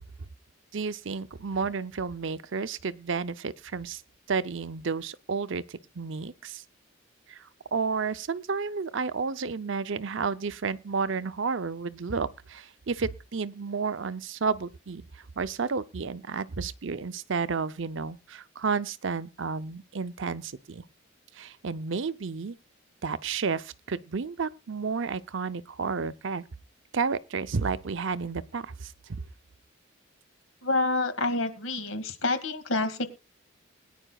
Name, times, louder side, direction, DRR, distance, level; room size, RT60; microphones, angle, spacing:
voice 1, 0.7-4.0 4.3-6.6 7.3-20.8 21.3-22.6 23.0-26.4 26.9-29.2, right 5 dB, 65° right, 0.6 m, -31 dB
voice 2, 30.6-33.1, left 2 dB, 75° left, 2.1 m, -28 dB
21.5 x 9.9 x 2.3 m
head